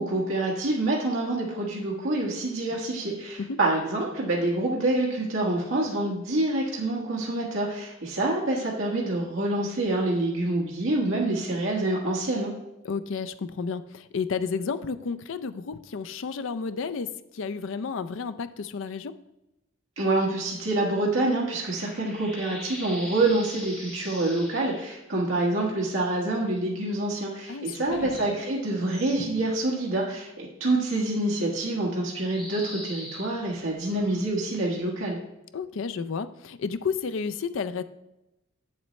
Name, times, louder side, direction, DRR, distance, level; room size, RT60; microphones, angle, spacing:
voice 1, 0.0-12.5 20.0-35.2, right 2 dB, 70° right, -3 dB, 1.5 m, -27 dB
voice 2, 12.8-19.1 27.5-28.1 35.5-37.8, left 5 dB, 65° left, 12 dB, 0.4 m, -32 dB
sound 1, 20.5-25.0 27.8-29.2 30.9-31.0 32.3-34.2, left 1 dB, 5° left, 1.4 m, -43 dB
8.0 x 7.4 x 3.1 m, 0.93 s
head